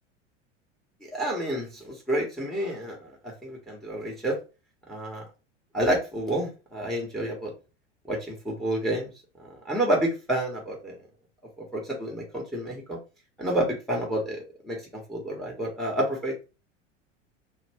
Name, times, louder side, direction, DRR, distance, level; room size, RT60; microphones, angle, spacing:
voice 1, 1.1-4.4 4.9-5.2 5.7-7.5 8.1-9.1 9.4-10.9 11.7-13.0 13.4-16.4, right 1 dB, ahead, 0 dB, 0.9 m, -29 dB
2.4 x 2.1 x 3.3 m, 0.31 s
figure-of-eight pair, 85°, 37 cm